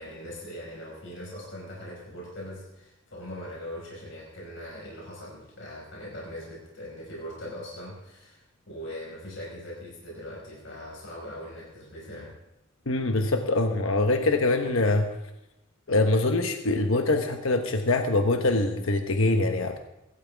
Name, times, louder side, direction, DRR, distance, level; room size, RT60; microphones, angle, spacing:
voice 1, 0.0-12.3, equal, 65° left, -3 dB, 5.3 m, -41 dB
voice 2, 12.9-15.1 15.9-19.8, left 2 dB, 80° left, 5 dB, 1.1 m, -24 dB
23.5 x 13.0 x 3.5 m, 0.92 s
head